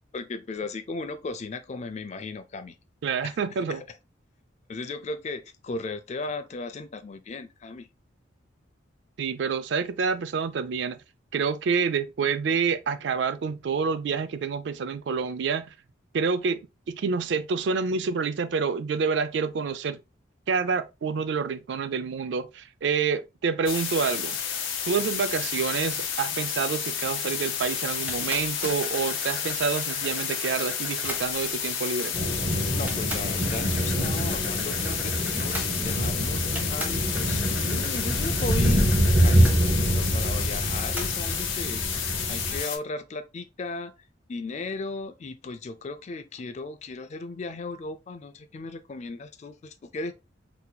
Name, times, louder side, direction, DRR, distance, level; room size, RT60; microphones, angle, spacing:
voice 1, 0.1-2.8 3.2-3.4 3.7-3.8 4.7-7.9 31.7-31.8 32.7-38.9 39.2-43.9 44.3-50.1, left 3 dB, 35° left, 0.3 m, -36 dB
voice 2, 3.0-3.8 9.2-11.0 11.3-15.7 16.1-16.6 16.9-20.0 20.5-24.4 24.9-32.2, right 5 dB, 65° right, 0.4 m, -28 dB
sound 1, 23.7-42.8, left 7 dB, 85° left, 0.7 m, -31 dB
sound 2, 28.1-31.6 32.4-32.5 32.9-36.2 36.6-39.6 41.0-41.4, equal, 10° right, 0.8 m, -40 dB
sound 3, 32.1-42.6, right 1 dB, 45° right, 0.9 m, -25 dB
4.0 x 2.8 x 2.2 m
head